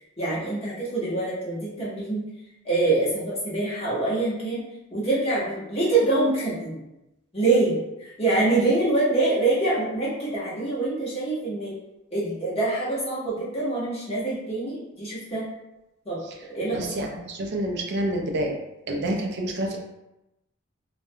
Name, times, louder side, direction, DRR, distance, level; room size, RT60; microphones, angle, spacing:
voice 1, 0.2-2.2 2.6-4.6 4.9-6.8 7.3-11.7 12.1-15.5 16.1-16.2 16.5-16.9, right 2 dB, 30° left, -8 dB, 0.9 m, -25 dB
voice 2, 16.7-18.6 18.9-19.8, right 1 dB, 55° right, 2 dB, 0.4 m, -28 dB
2.4 x 2.2 x 2.7 m, 0.93 s
head